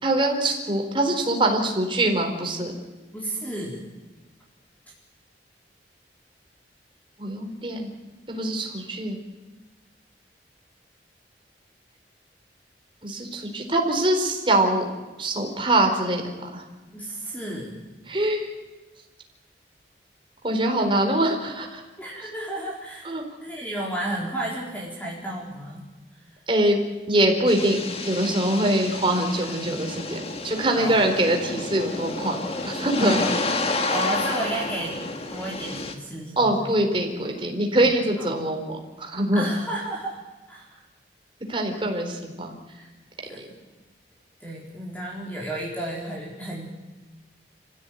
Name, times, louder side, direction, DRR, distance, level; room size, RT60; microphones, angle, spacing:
voice 1, 0.0-2.7 7.2-7.9 8.3-9.2 13.0-14.9 15.2-16.6 18.1-18.5 20.4-21.8 23.0-23.2 26.5-26.8 27.1-33.2 36.4-39.5 41.5-42.6 43.4-43.5, right 1 dB, 30° right, 3 dB, 4.3 m, -23 dB
voice 2, 3.1-3.9 16.9-17.8 22.0-25.9 26.1-26.4 29.5-29.7 30.7-31.0 33.0-33.5 33.9-35.0 35.3-36.7 37.8-38.3 39.3-40.2 40.5-40.8 42.7-42.9 43.2-43.5 44.4-46.7, right 1 dB, 10° left, -4 dB, 4.0 m, -33 dB
sound 1, 27.5-35.9, left 2 dB, 35° left, 2.0 m, -30 dB
27.0 x 15.5 x 9.3 m, 1.2 s
head